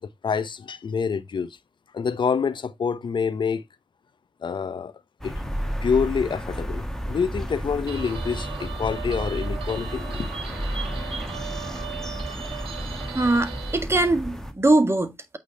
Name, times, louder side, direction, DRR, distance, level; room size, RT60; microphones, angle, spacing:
voice 1, 0.2-1.6 1.9-3.6 4.4-4.9 5.2-5.3 5.8-10.3, left 6 dB, 65° left, 0.9 m, -27 dB
sound 1, 5.2-14.5, equal, 5° left, 2.0 m, -32 dB
Guitar, 7.9-13.8, right 10 dB, 90° right, 1.0 m, -38 dB
voice 2, 13.1-15.4, right 2 dB, 30° right, 1.7 m, -22 dB
8.4 x 3.7 x 4.1 m
cardioid pair, 45°, 9 cm